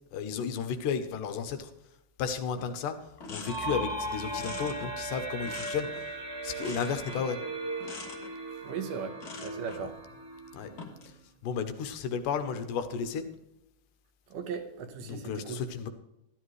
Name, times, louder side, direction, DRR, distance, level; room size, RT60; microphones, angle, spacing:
voice 1, 0.1-1.7 2.2-6.1 6.4-7.4 9.8-9.9 10.5-10.7 11.1-11.2 11.4-13.3 15.0-15.9, left 6 dB, 75° left, 9 dB, 2.4 m, -33 dB
sound 1, 2.6-2.7 3.0-3.9 4.3-6.2 6.6-7.3 7.8-8.3 9.2-9.9 10.6-11.1, left 4 dB, 60° left, 1.0 m, -44 dB
sound 2, 3.5-11.1, right 2 dB, 20° right, 0.7 m, -38 dB
voice 2, 8.6-10.0 14.3-15.6, right 6 dB, 75° right, 6 dB, 2.5 m, -38 dB
13.0 x 11.5 x 3.2 m, 0.87 s
omnidirectional pair, 3.9 m